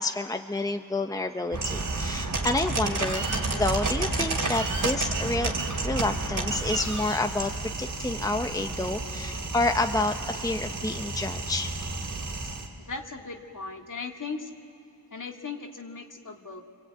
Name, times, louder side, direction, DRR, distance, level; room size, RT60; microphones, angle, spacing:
voice 1, 0.0-3.2 3.5-5.5 5.8-11.7, left 2 dB, 10° left, 6 dB, 0.9 m, -29 dB
sound 1, 1.5-12.7, right 3 dB, 60° right, 3.0 m, -30 dB
voice 2, 12.8-14.5 15.1-16.6, left 4 dB, 60° left, 3 dB, 2.0 m, -38 dB
26.0 x 24.5 x 9.0 m, 2.7 s
wide cardioid pair, 95°, 36 cm